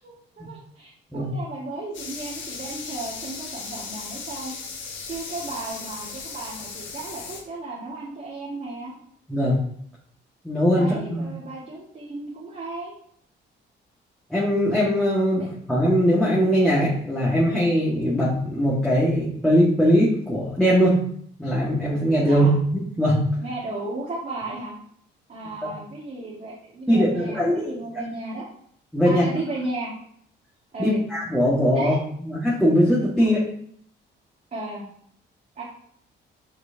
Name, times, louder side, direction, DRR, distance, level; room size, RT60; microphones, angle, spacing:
voice 1, 0.0-4.5 5.1-9.0 10.7-13.0 15.4-15.5 22.3-22.5 23.4-24.7 25.3-28.5 29.0-29.9 30.7-31.0 31.7-32.0 33.2-33.4 34.5-34.8 35.6-35.7, right 2 dB, 40° right, -7 dB, 2.0 m, -34 dB
sound 1, 1.9-7.4, left 5 dB, 75° left, 1.4 m, -36 dB
voice 2, 10.4-11.3 14.3-21.0 21.4-23.2 25.6-25.7 26.9-27.7 28.9-29.2 30.8-31.9 32.2-33.4, equal, 5° left, -7 dB, 1.8 m, -21 dB
6.1 x 6.0 x 2.9 m, 0.64 s
cardioid pair, 90°, 20 cm